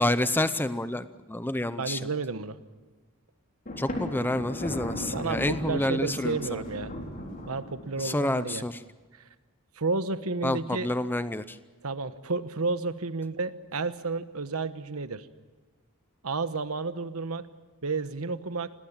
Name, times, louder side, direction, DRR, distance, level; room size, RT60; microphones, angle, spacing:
voice 1, 0.0-2.0 3.8-6.6 8.0-8.8 10.4-11.6, left 1 dB, 10° left, 12 dB, 0.6 m, -28 dB
voice 2, 1.8-2.6 5.1-6.9 7.5-8.6 9.2-9.3 9.8-10.9 11.8-15.3 16.2-17.5 17.8-18.7, right 4 dB, 75° right, 12 dB, 1.2 m, -31 dB
Thunder, 3.7-8.2, left 1 dB, 40° left, 3.8 m, -36 dB
27.0 x 19.0 x 7.3 m, 1.3 s
head